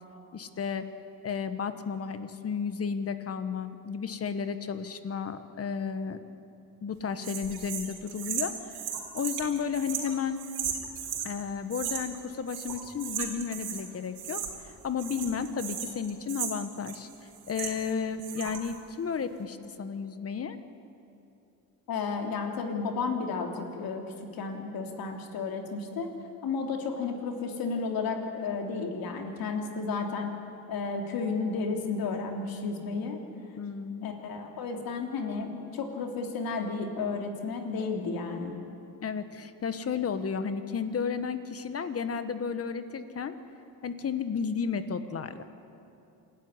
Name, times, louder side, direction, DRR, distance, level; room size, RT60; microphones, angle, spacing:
voice 1, 0.3-0.9 1.2-6.2 6.8-8.8 9.1-10.4 11.2-14.4 14.8-17.1 17.5-20.6 33.6-34.1 39.0-43.3 43.8-45.4, left 6 dB, 40° left, 10 dB, 1.5 m, -33 dB
sound 1, 7.2-11.3 11.7-12.2 12.5-13.9 14.1-14.7 15.0-17.9 18.2-18.7, right 8 dB, 80° right, 4.0 m, -36 dB
voice 2, 21.9-24.0 24.3-26.1 26.4-30.3 30.7-33.2 34.0-38.5, left 4 dB, 70° left, 3 dB, 3.2 m, -32 dB
26.5 x 14.0 x 9.9 m, 2.8 s
cardioid pair, 115°, 37 cm